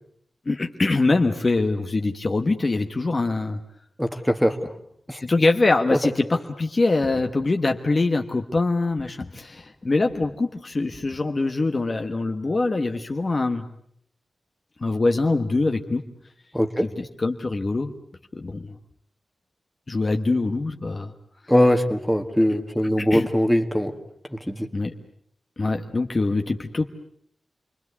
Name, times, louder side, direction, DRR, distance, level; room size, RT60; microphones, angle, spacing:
voice 1, 0.5-3.6 5.2-13.7 14.8-16.0 17.0-17.9 18.3-18.7 19.9-21.1 23.0-23.3 24.7-24.9 25.6-26.9, left 3 dB, 30° left, 5 dB, 1.2 m, -23 dB
voice 2, 4.0-4.7 5.1-5.2 5.9-6.0 16.5-16.9 21.5-23.9 24.3-24.7, equal, ahead, 5 dB, 1.7 m, -21 dB
29.0 x 22.5 x 8.2 m, 0.69 s
wide cardioid pair, 170°, 0 cm